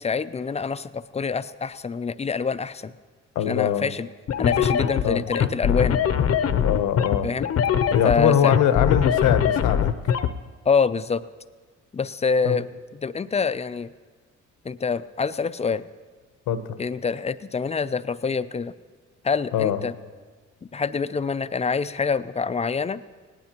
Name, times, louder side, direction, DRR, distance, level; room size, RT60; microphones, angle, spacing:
voice 1, 0.0-2.9 3.5-4.1 4.4-6.0 7.2-7.5 8.0-8.5 10.7-11.2 11.9-12.7 12.9-13.9 14.6-15.9 16.8-18.7 19.2-19.9 20.7-23.0, left 5 dB, 20° left, 13 dB, 0.4 m, -26 dB
voice 2, 3.3-3.9 5.0-5.2 6.6-7.3 7.9-9.9 12.4-12.6 16.5-16.8 19.5-19.8, left 9 dB, 85° left, 10 dB, 0.9 m, -22 dB
sound 1, 4.3-10.3, left 8 dB, 55° left, 0.7 m, -22 dB
18.0 x 18.0 x 2.9 m, 1.4 s
cardioid pair, 90°, 30 cm